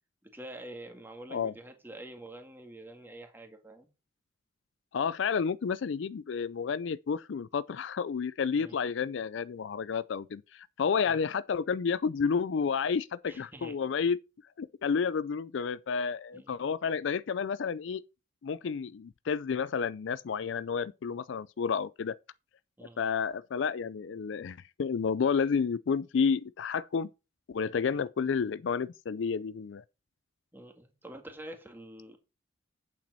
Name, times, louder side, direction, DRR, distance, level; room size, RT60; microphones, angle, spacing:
voice 1, 0.2-3.9 8.5-8.8 11.0-11.3 13.2-13.7 16.3-16.6 22.8-23.0 30.5-32.2, right 1 dB, 10° right, 1.8 m, -47 dB
voice 2, 4.9-14.2 14.6-18.0 18.4-22.2 23.0-27.1 27.5-29.8, left 6 dB, 65° left, 0.4 m, -30 dB
8.8 x 7.4 x 4.2 m
head